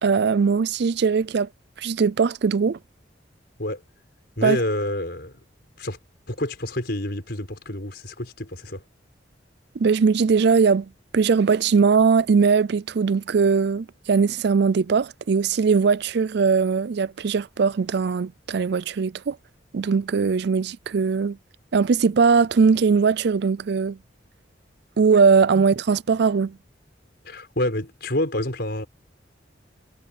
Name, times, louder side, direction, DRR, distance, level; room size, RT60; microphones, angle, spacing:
voice 1, 0.0-1.5 1.8-2.8 4.4-4.6 9.8-19.4 19.7-21.4 21.7-24.0 25.0-26.6, right 5 dB, 60° right, 0.4 m, -20 dB
voice 2, 4.4-5.4 5.8-6.0 6.3-8.8 25.5-25.6 27.2-28.9, left 1 dB, 60° left, 5.7 m, -28 dB
head